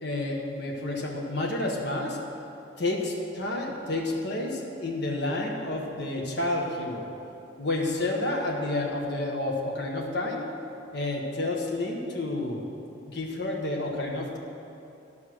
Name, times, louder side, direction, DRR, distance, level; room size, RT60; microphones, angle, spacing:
voice 1, 0.0-2.2 2.8-7.1 7.6-10.4 10.9-12.6 13.1-14.4, left 2 dB, 60° left, 0 dB, 1.5 m, -30 dB
12.5 x 5.9 x 6.3 m, 2.7 s
head